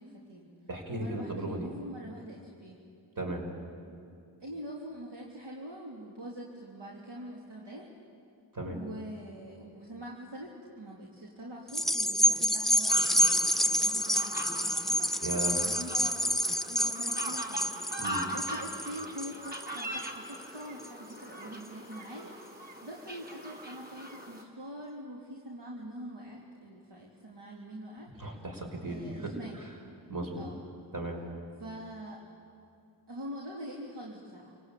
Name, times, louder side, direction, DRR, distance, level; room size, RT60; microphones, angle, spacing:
voice 1, 0.0-0.5 1.0-2.8 4.4-7.9 8.7-15.2 15.6-16.4 16.7-28.4 28.9-29.7 30.4-30.6 31.6-32.2 33.1-34.6, equal, 65° right, -3 dB, 3.4 m, -44 dB
voice 2, 0.7-1.7 3.2-3.4 8.5-8.8 15.2-15.6 18.0-18.2 28.2-29.6 30.1-30.5 30.9-31.2, right 1 dB, 45° right, 1 dB, 6.0 m, -36 dB
sound 1, 11.7-20.4 20.8-20.9, equal, ahead, 0.6 m, -28 dB
sound 2, 12.9-24.4, right 1 dB, 20° right, 3.4 m, -41 dB
28.5 x 18.0 x 9.1 m, 2.4 s
cardioid pair, 70°, 46 cm